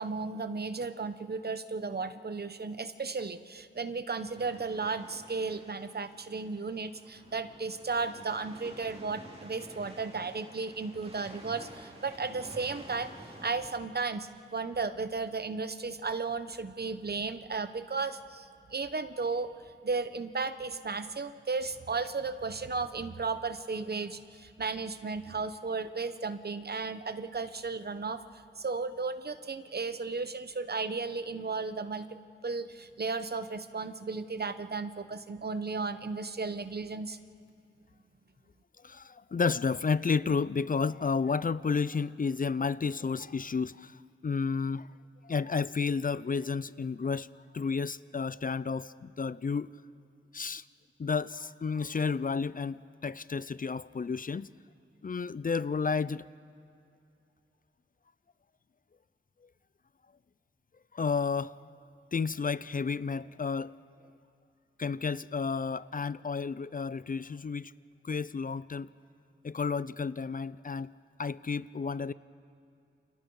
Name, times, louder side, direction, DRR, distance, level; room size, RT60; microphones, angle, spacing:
voice 1, 0.0-13.1 13.4-19.5 19.8-28.2 28.6-32.1 32.4-37.2, right 4 dB, 55° right, 11 dB, 1.0 m, -34 dB
sound 1, 4.3-13.9, right 1 dB, 30° right, 3.5 m, -51 dB
voice 2, 38.8-44.9 45.2-47.3 47.5-49.7 50.3-50.6 51.0-54.5 55.0-56.3 60.9-61.6 62.1-63.7 64.8-67.7 68.0-68.9 69.4-70.9 71.2-72.1, left 5 dB, 45° left, 17 dB, 0.5 m, -31 dB
29.0 x 29.0 x 4.8 m, 2.5 s
wide cardioid pair, 80°, 20 cm